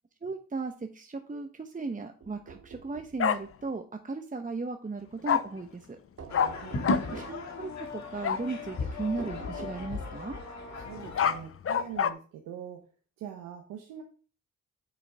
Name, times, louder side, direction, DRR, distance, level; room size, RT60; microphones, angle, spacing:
voice 1, 0.2-6.0 7.1-10.4, right 3 dB, 25° right, 6 dB, 1.0 m, -36 dB
sound 1, 2.2-3.2 6.2-7.5 9.2-10.3, right 5 dB, 50° right, 1.3 m, -46 dB
Bark, 3.2-3.4 5.3-5.4 6.3-6.5 6.8-7.0 8.2-8.4 10.9-12.1, left 8 dB, 45° left, 0.7 m, -26 dB
sound 2, 6.3-11.4, left 3 dB, 60° left, 2.0 m, -36 dB
voice 2, 6.3-7.2 10.8-12.9 13.2-14.0, right 9 dB, 90° right, 2 dB, 1.1 m, -44 dB
8.4 x 6.8 x 3.5 m, 0.37 s
supercardioid pair, 50°, 31 cm